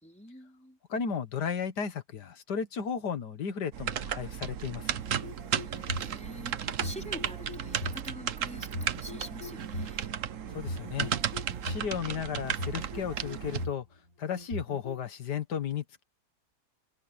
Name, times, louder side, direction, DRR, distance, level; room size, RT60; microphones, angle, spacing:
voice 1, 0.0-0.8 5.5-10.1, equal, 5° left, 4.6 m, -46 dB
voice 2, 0.9-4.9 10.5-11.1 11.6-13.9 14.2-16.0, left 7 dB, 85° left, 2.1 m, -34 dB
sound 1, 3.7-13.7, right 8 dB, 55° right, 1.2 m, -34 dB
sound 2, 5.0-6.1 6.7-8.0 8.6-9.9 10.5-11.9 12.4-13.8 14.3-15.0, left 2 dB, 55° left, 5.4 m, -39 dB
omnidirectional pair, 1.7 m